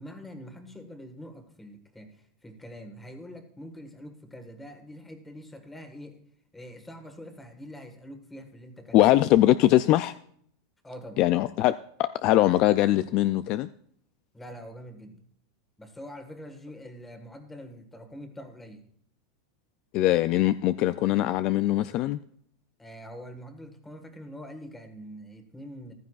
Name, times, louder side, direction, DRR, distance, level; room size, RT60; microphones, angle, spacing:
voice 1, 0.0-6.2 6.5-9.1 10.8-11.2 14.3-15.2 15.8-18.8 22.8-25.9, equal, 5° left, 7 dB, 1.5 m, -44 dB
voice 2, 8.9-10.1 11.2-11.7 12.0-13.7 19.9-22.2, left 15 dB, 45° left, 13 dB, 0.3 m, -22 dB
14.5 x 12.0 x 2.4 m, 0.64 s
supercardioid pair, 140°, 2 cm